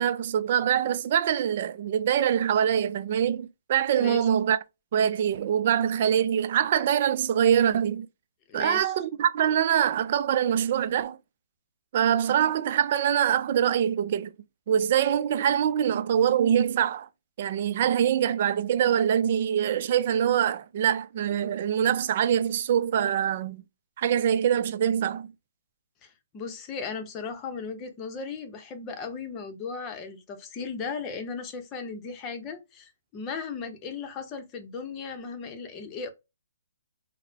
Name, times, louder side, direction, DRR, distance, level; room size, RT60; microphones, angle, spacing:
voice 1, 0.0-4.6 4.9-8.1 8.5-11.2 11.9-14.3 14.7-17.1 17.4-23.6 24.0-25.3, right 9 dB, 45° right, 0.4 m, -24 dB
voice 2, 8.5-8.9 26.0-36.1, left 5 dB, 20° left, 0.8 m, -36 dB
4.0 x 2.1 x 2.7 m
hypercardioid pair, 155°, 0 cm